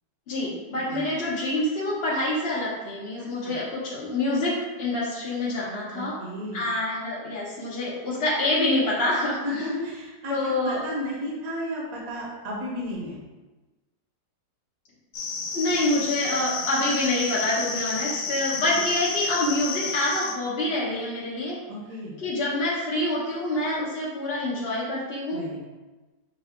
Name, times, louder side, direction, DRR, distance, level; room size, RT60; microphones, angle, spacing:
voice 1, 0.3-6.1 6.5-9.6 10.3-10.8 15.5-21.6 22.2-25.4, left 1 dB, 50° left, -7 dB, 0.8 m, -26 dB
voice 2, 3.2-3.6 5.9-6.6 9.4-13.2 21.7-22.2 25.3-25.6, left 1 dB, 60° right, -4 dB, 1.3 m, -33 dB
sound 1, 15.1-20.4, left 4 dB, 90° left, 1.3 m, -31 dB
6.3 x 2.4 x 3.5 m, 1.2 s
omnidirectional pair, 1.8 m